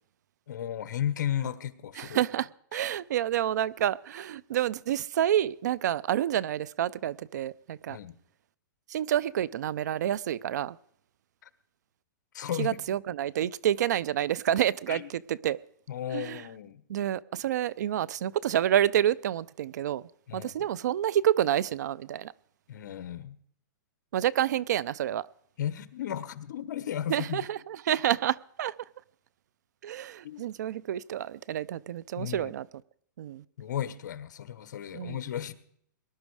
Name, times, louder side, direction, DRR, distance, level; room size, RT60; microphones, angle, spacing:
voice 1, 0.5-2.2 7.9-8.2 12.3-12.8 14.9-15.1 15.9-16.8 20.3-20.5 22.7-23.4 25.6-27.4 30.2-30.5 32.2-32.5 33.6-35.5, left 10 dB, 60° left, 1.2 m, -34 dB
voice 2, 2.0-8.0 8.9-10.8 12.6-15.6 16.1-16.4 16.9-22.3 24.1-25.3 27.1-28.7 29.8-32.7 33.2-33.4 34.9-35.2, right 11 dB, 60° right, 0.5 m, -28 dB
19.5 x 11.5 x 4.8 m
hypercardioid pair, 160°, 11 cm